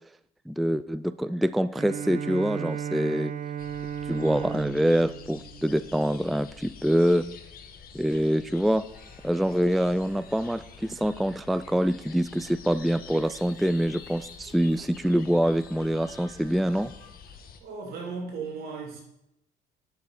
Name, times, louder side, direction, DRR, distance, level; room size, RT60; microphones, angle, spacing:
voice 1, 0.5-3.3 4.1-7.3 7.9-8.9 9.2-16.9, equal, ahead, 15 dB, 0.3 m, -25 dB
Bowed string instrument, 1.7-6.5, right 8 dB, 55° right, 1.0 m, -35 dB
sound 1, 3.6-17.6, left 6 dB, 60° left, 1.3 m, -48 dB
sound 2, 8.9-17.1, equal, 30° right, 4.6 m, -57 dB
voice 2, 17.3-19.0, right 4 dB, 70° right, 0 dB, 3.4 m, -37 dB
9.6 x 7.2 x 5.9 m, 0.82 s
cardioid pair, 110°, 17 cm